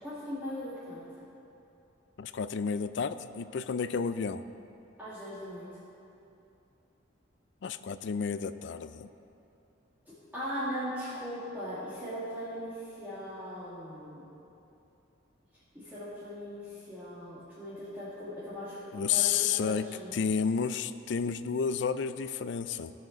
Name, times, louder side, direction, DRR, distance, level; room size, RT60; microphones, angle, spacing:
voice 1, 0.0-1.0 5.0-5.7 10.3-14.3 15.7-20.1, equal, 10° right, -12 dB, 1.9 m, -39 dB
voice 2, 2.2-4.4 7.6-9.1 18.9-19.8 20.1-22.9, left 6 dB, 65° left, 12 dB, 0.4 m, -31 dB
17.0 x 6.6 x 3.9 m, 2.8 s
head